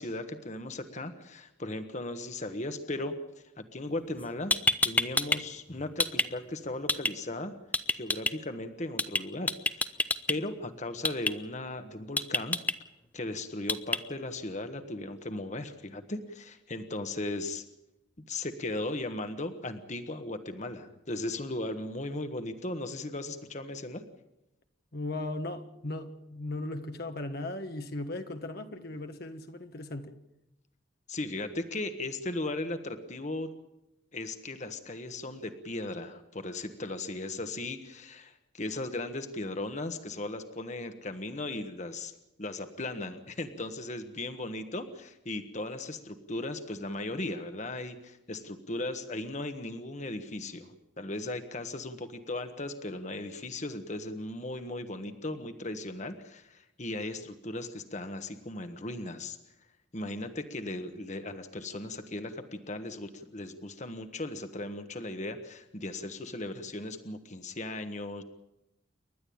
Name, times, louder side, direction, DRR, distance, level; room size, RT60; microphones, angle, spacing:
voice 1, 0.0-4.5 4.8-7.5 7.9-12.6 13.1-17.6 18.3-24.0 31.1-33.5 34.1-42.1 42.4-59.4 59.9-68.2, left 2 dB, 35° left, 1.4 m, -37 dB
sound 1, 4.2-4.3 4.5-5.4 5.7-6.3 6.9-7.1 7.7-8.3 9.0-9.2 9.5-10.3 11.0-11.3 12.2-12.7 13.7-14.0, left 2 dB, 10° left, 0.7 m, -26 dB
voice 2, 24.9-30.2, left 2 dB, 55° left, 1.4 m, -37 dB
29.5 x 12.0 x 8.6 m
head